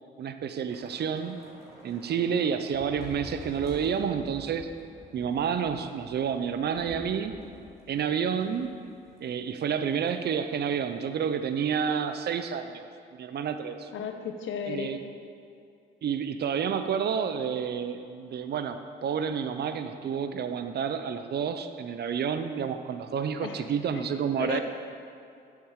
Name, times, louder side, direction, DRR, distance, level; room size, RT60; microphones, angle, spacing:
voice 1, 0.2-1.4 1.8-4.7 5.1-7.4 7.9-8.7 9.2-12.9 13.1-13.9 14.7-15.0 16.0-24.6, right 7 dB, 55° right, 9 dB, 0.7 m, -29 dB
Thunder / Rain, 0.7-9.3 9.5-9.7 10.1-10.3, equal, 15° right, 2.7 m, -48 dB
voice 2, 13.9-15.0 23.4-23.6 23.9-24.1 24.4-24.6, left 6 dB, 75° left, 5 dB, 1.1 m, -34 dB
8.0 x 7.3 x 7.4 m, 2.4 s
cardioid pair, 90°, 20 cm